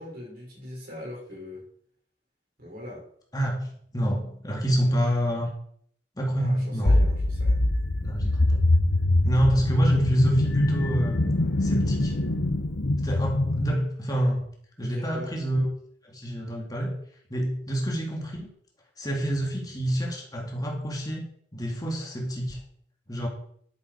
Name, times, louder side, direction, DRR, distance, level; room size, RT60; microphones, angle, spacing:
voice 1, 0.0-1.7 2.6-3.0 6.4-7.6 14.8-15.3, left 1 dB, 55° right, -3 dB, 6.2 m, -41 dB
voice 2, 3.9-5.5 6.2-7.1 8.0-8.7 9.2-11.2 11.6-12.1 13.0-14.5 14.8-15.7 16.0-16.9 17.3-18.5 19.0-21.2 21.5-22.6 23.1-23.3, right 1 dB, 20° left, -1 dB, 2.4 m, -27 dB
sound 1, 6.9-13.7, left 2 dB, 85° left, 1.0 m, -23 dB
11.5 x 9.6 x 4.7 m, 0.63 s
head